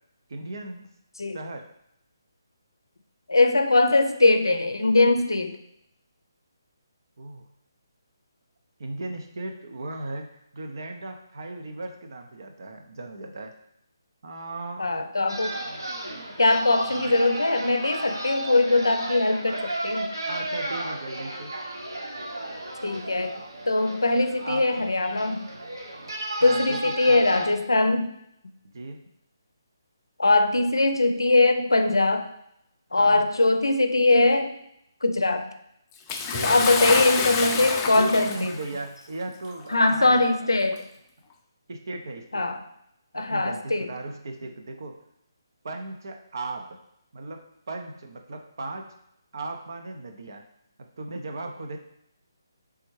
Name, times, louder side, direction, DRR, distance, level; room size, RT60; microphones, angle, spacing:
voice 1, 0.3-0.9 1.3-1.7 7.2-7.5 8.8-13.5 14.2-15.1 20.1-21.5 24.4-24.7 26.4-27.2 28.7-29.0 32.9-33.3 36.2-36.7 37.9-40.2 41.7-42.5 43.1-45.0 45.6-46.8 47.1-48.9 49.3-50.5 51.0-51.8, right 2 dB, 60° right, 4 dB, 0.5 m, -36 dB
voice 2, 3.3-5.6 14.8-15.6 16.4-20.1 22.8-23.4 23.7-25.4 26.4-28.1 30.2-32.3 32.9-34.5 35.0-35.5 36.4-38.5 39.7-40.9 42.3-42.6 43.1-43.9, left 2 dB, 80° left, 7 dB, 0.5 m, -21 dB
sound 1, 15.3-27.5, right 1 dB, 85° right, 0.8 m, -34 dB
Bathtub (filling or washing) / Splash splatter, 36.1-38.7 39.6-39.7 40.7-40.8, left 5 dB, 20° left, 0.4 m, -27 dB
4.2 x 3.4 x 3.1 m, 0.78 s
figure-of-eight pair, 145°, 2 cm